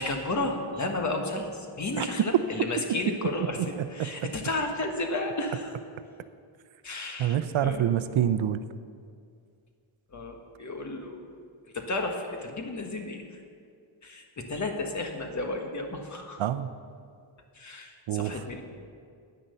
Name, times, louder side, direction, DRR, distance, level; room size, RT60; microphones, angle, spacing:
voice 1, 0.0-5.7 6.8-7.9 10.1-11.4 11.7-13.2 14.0-16.4 17.5-18.6, left 2 dB, 35° left, 3 dB, 1.4 m, -33 dB
voice 2, 7.2-8.6 16.4-16.7 18.1-18.4, right 10 dB, 70° right, 12 dB, 0.7 m, -26 dB
10.0 x 10.0 x 6.8 m, 2.3 s
wide cardioid pair, 160°, 49 cm